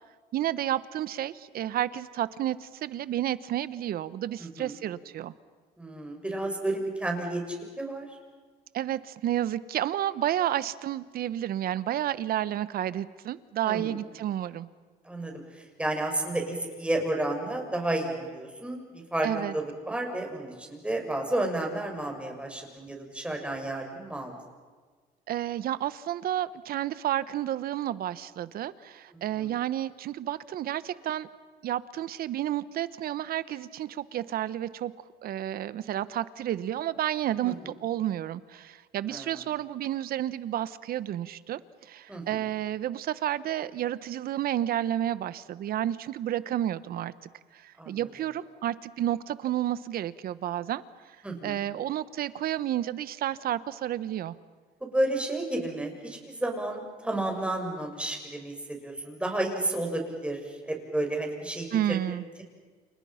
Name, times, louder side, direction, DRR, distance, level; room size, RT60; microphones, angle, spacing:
voice 1, 0.3-5.3 8.7-14.7 19.2-19.5 25.3-31.3 31.6-34.9 35.2-47.1 47.5-50.8 51.4-54.3 61.7-62.2, right 12 dB, 60° right, 16 dB, 1.1 m, -31 dB
voice 2, 4.4-4.7 5.8-8.1 13.6-14.0 15.0-18.8 19.1-24.3 29.1-29.5 37.4-37.5 39.1-39.4 42.1-42.4 47.8-48.1 51.2-51.6 54.8-61.7, right 1 dB, 5° right, 2 dB, 6.4 m, -31 dB
29.5 x 29.0 x 5.8 m, 1.5 s
cardioid pair, 110°, 17 cm